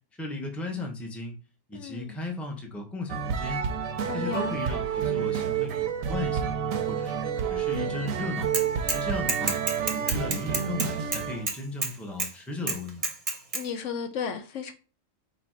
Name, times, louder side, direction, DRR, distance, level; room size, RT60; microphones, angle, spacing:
voice 1, 0.2-1.4 1.7-3.7 4.1-7.1 7.4-8.5 8.9-9.5 9.9-13.1, left 2 dB, ahead, 0.6 m, -36 dB
voice 2, 1.7-2.2 4.0-4.6 13.5-14.7, left 6 dB, 75° left, 1.0 m, -34 dB
sound 1, 3.1-11.5, right 7 dB, 85° right, 1.1 m, -29 dB
Bicycle / Mechanisms, 8.5-9.0 9.3-11.9 12.2-12.3 12.7-13.6, right 3 dB, 35° right, 0.7 m, -29 dB
4.2 x 2.7 x 4.5 m
omnidirectional pair, 1.3 m